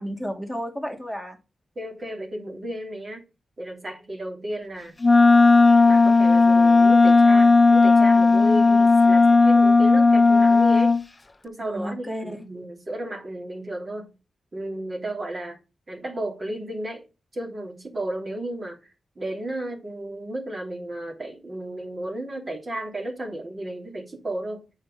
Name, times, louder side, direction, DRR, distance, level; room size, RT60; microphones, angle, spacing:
voice 1, 0.0-1.4 11.6-12.5, equal, 5° right, 2.6 m, -32 dB
voice 2, 1.7-3.3 3.6-5.0 5.8-11.0 11.4-14.1 14.5-15.6 15.9-17.1 17.3-18.8 19.1-24.7, right 1 dB, 40° right, 3.0 m, -33 dB
Wind instrument woodwind instrument, 5.0-11.0, left 3 dB, 30° left, 0.5 m, -15 dB
7.6 x 4.9 x 5.4 m
cardioid pair, 65°, 0 cm